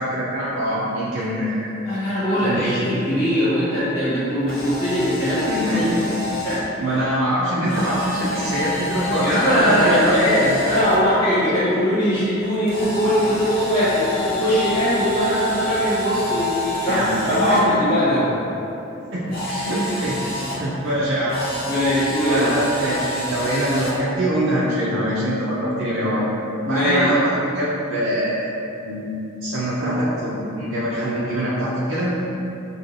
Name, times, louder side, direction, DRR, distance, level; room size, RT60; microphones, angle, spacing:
voice 1, 0.0-1.7 2.4-2.8 5.5-6.1 6.8-10.1 11.3-11.8 16.9-17.8 19.1-20.2 20.6-21.4 22.3-26.2 26.7-28.5 28.9-29.1 29.4-32.1, equal, 85° right, -10 dB, 0.7 m, -24 dB
voice 2, 1.8-5.9 6.4-6.7 9.2-18.3 21.6-22.6 26.6-27.1, equal, 15° left, -13 dB, 1.4 m, -20 dB
Camera, 4.4-6.6 7.7-11.0 12.7-17.6 19.3-20.6 21.3-24.0, left 1 dB, 50° left, 0.9 m, -28 dB
6.3 x 2.5 x 2.6 m, 2.9 s
head